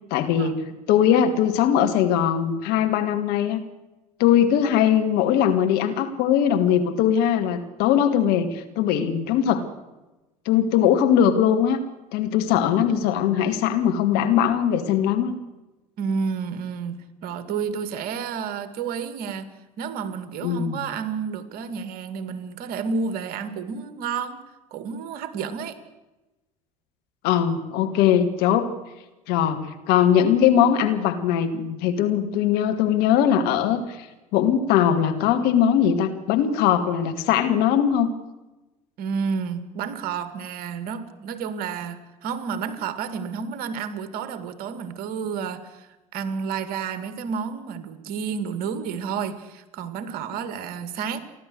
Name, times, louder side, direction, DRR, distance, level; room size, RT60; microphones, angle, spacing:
voice 1, 0.1-0.6 0.9-3.6 4.2-9.6 10.5-11.8 12.1-15.4 20.4-20.8 27.2-28.7 29.3-34.1 34.3-38.1, left 9 dB, 65° left, 7 dB, 2.3 m, -20 dB
voice 2, 16.0-19.5 19.8-24.4 24.7-25.8 39.0-51.2, right 6 dB, 60° right, 13 dB, 2.1 m, -30 dB
29.5 x 12.0 x 8.0 m, 1.1 s
hypercardioid pair, 70°, 18 cm